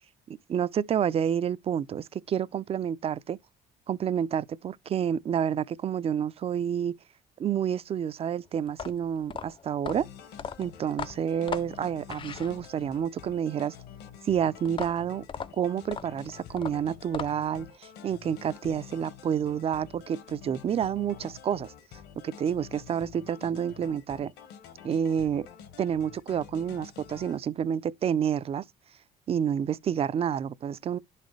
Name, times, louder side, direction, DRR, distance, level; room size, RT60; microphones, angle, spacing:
voice 1, 0.3-3.4 3.9-6.9 7.4-10.1 10.6-13.7 14.2-15.2 15.6-21.7 22.2-24.3 24.8-25.5 25.8-28.6 29.3-31.0, right 8 dB, 35° right, 0.4 m, -29 dB
sound 1, 8.7-13.0 14.6-17.6, left 6 dB, 30° left, 0.5 m, -38 dB
sound 2, 9.9-27.4, left 8 dB, 80° left, 1.2 m, -48 dB
11.0 x 4.2 x 3.2 m
cardioid pair, 110°, 17 cm